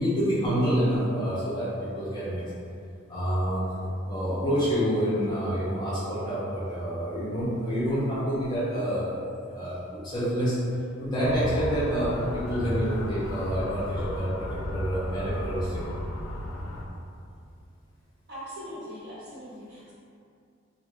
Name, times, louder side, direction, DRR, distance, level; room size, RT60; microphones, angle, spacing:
voice 1, 0.0-1.7 1.9-2.4 3.1-9.1 9.5-10.6 11.0-15.8, equal, 20° left, -11 dB, 0.8 m, -27 dB
Motor vehicle (road) / Siren, 11.2-16.9, left 1 dB, 85° left, 0.4 m, -34 dB
voice 2, 18.3-19.9, equal, 55° right, -10 dB, 1.1 m, -41 dB
2.7 x 2.2 x 3.2 m, 2.5 s
head